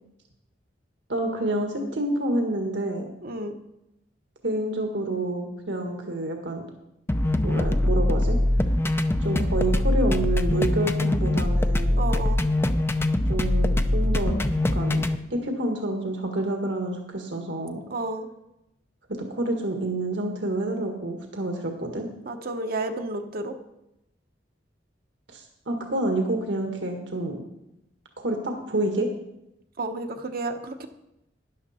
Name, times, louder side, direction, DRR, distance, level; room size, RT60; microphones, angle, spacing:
voice 1, 1.1-3.1 4.4-6.6 7.4-8.4 9.2-12.0 13.3-14.3 14.7-17.8 19.1-22.1 25.3-27.4 28.2-29.1, right 1 dB, 75° right, 3 dB, 1.6 m, -28 dB
voice 2, 3.2-3.6 12.0-12.4 17.9-18.3 22.2-23.6 29.8-30.9, right 2 dB, 55° right, 6 dB, 0.9 m, -31 dB
sound 1, 7.1-15.2, left 1 dB, 15° left, 0.5 m, -23 dB
12.5 x 10.5 x 4.3 m, 0.85 s
head